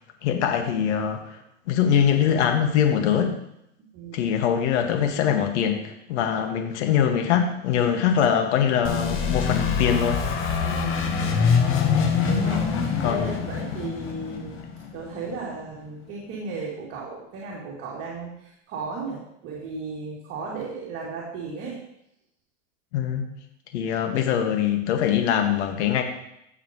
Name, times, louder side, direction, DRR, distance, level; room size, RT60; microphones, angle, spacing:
voice 1, 0.2-1.4 1.7-3.3 4.1-10.2 13.0-13.3 22.9-23.3 23.7-26.0, left 8 dB, 65° left, 4 dB, 1.8 m, -23 dB
voice 2, 3.9-4.3 10.6-11.5 12.3-14.6 14.9-21.8, right 3 dB, 45° right, -5 dB, 3.0 m, -35 dB
sound 1, 8.8-15.4, left 6 dB, 35° left, 1.5 m, -24 dB
15.5 x 7.1 x 3.1 m, 0.79 s
hypercardioid pair, 120°, 36 cm